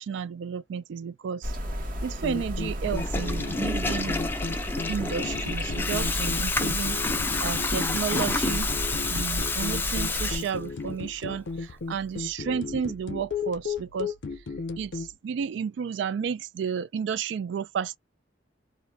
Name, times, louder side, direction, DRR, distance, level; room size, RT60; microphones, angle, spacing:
voice 1, 0.0-1.5 2.0-4.2 4.9-7.0 7.4-8.7 9.1-14.1 14.8-18.0, right 7 dB, 75° right, 0.3 m, -32 dB
sound 1, 1.4-10.4, equal, 50° right, 0.8 m, -33 dB
sound 2, 2.2-15.1, left 4 dB, 75° left, 0.6 m, -35 dB
Water tap faucet / Toilet flush, 2.8-10.9, left 3 dB, 10° left, 0.3 m, -29 dB
2.4 x 2.1 x 3.3 m
head